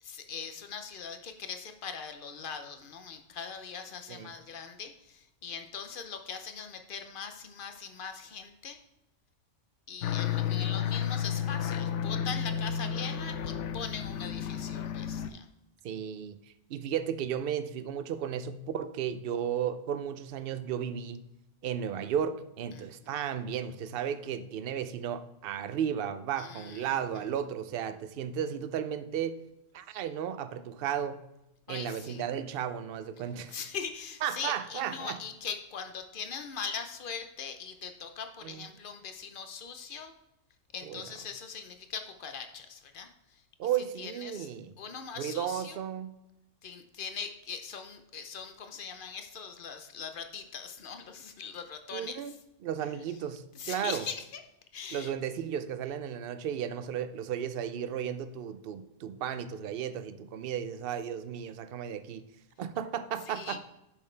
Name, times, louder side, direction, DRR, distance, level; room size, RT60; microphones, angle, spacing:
voice 1, 0.0-8.8 9.9-15.5 22.7-23.2 26.4-27.3 31.7-32.2 33.5-40.1 40.7-43.4 44.0-44.5 44.8-45.8 46.6-52.4 53.5-54.4 54.7-55.1 63.3-63.6, left 6 dB, 50° left, 7 dB, 0.9 m, -41 dB
sound 1, 10.0-15.3, left 8 dB, 75° left, 0.9 m, -32 dB
voice 2, 15.8-16.4 16.7-21.2 21.6-29.4 29.7-31.2 31.7-33.5 34.2-35.2 38.4-38.6 40.8-41.1 43.6-44.7 45.2-46.2 51.9-52.3 52.6-54.0 54.9-62.3 62.6-63.7, right 9 dB, 60° right, 11 dB, 0.7 m, -34 dB
8.8 x 6.4 x 3.3 m, 0.90 s
omnidirectional pair, 1.3 m